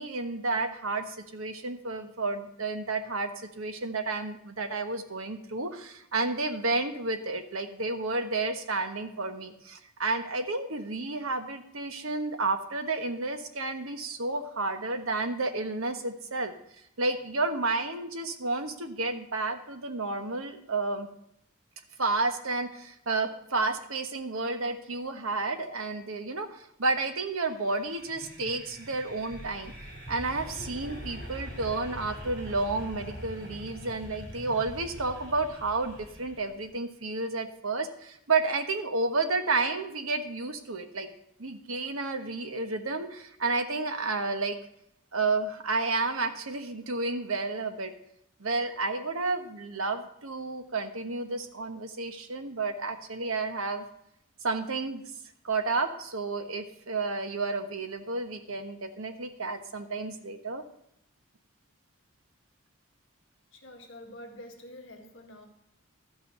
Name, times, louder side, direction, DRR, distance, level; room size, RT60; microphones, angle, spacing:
voice 1, 0.0-16.5 17.0-21.1 22.0-29.7 30.1-41.1 41.4-44.6 45.1-47.9 48.4-53.8 54.4-55.0 55.4-60.6, right 3 dB, 75° right, 7 dB, 1.2 m, -31 dB
sound 1, 27.5-36.7, equal, 50° right, 4.1 m, -43 dB
voice 2, 63.5-65.5, left 1 dB, 60° left, 1 dB, 1.8 m, -47 dB
13.0 x 5.8 x 6.6 m, 0.75 s
head